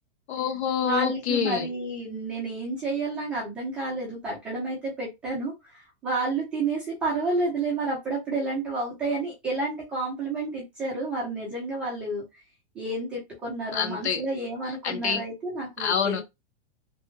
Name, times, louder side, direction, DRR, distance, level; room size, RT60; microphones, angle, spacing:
voice 1, 0.3-1.7 13.7-14.2 14.8-15.2 15.8-16.2, left 7 dB, 85° left, 1.1 m, -26 dB
voice 2, 0.8-12.2 12.7-16.2, right 2 dB, 5° right, 0.3 m, -30 dB
3.2 x 2.1 x 3.1 m
supercardioid pair, 165°, 32 cm